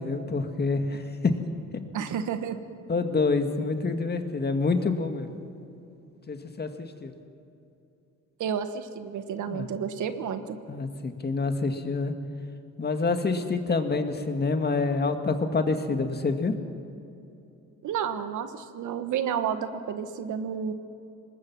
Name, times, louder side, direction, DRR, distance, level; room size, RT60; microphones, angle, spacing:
voice 1, 0.0-1.3 2.9-5.3 6.3-7.1 9.5-9.7 10.7-12.1 12.8-16.5, left 3 dB, 35° left, 7 dB, 1.9 m, -27 dB
voice 2, 1.9-2.6 8.4-10.6 17.8-20.7, right 8 dB, 75° right, 9 dB, 1.4 m, -31 dB
24.5 x 20.5 x 6.1 m, 2.8 s
cardioid pair, 90°, 30 cm